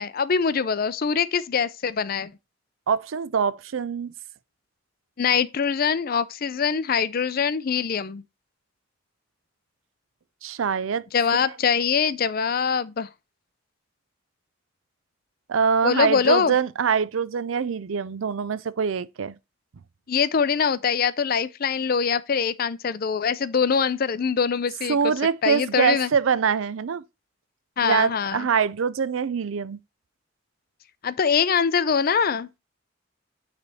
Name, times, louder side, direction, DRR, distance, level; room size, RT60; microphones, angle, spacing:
voice 1, 0.0-2.3 5.2-8.2 11.1-13.1 15.8-16.5 20.1-25.1 25.4-26.1 27.8-28.5 31.0-32.5, left 6 dB, 45° left, 0.5 m, -23 dB
voice 2, 2.9-4.1 10.4-11.0 15.5-19.3 24.9-27.0 27.8-29.8, right 6 dB, 85° right, 0.5 m, -24 dB
9.6 x 3.4 x 4.2 m
head